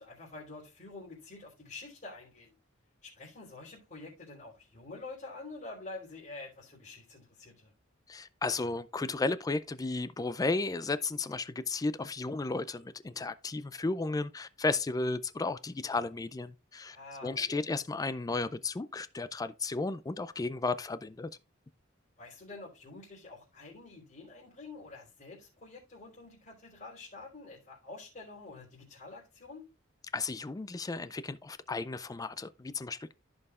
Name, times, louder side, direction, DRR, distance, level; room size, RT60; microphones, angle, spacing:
voice 1, 0.0-2.6 3.0-7.7 16.9-17.6 22.2-29.6, left 3 dB, 40° left, 3.7 m, -47 dB
voice 2, 8.1-17.0 17.2-21.3 30.1-33.1, left 3 dB, 20° left, 0.3 m, -34 dB
15.0 x 5.5 x 2.4 m
head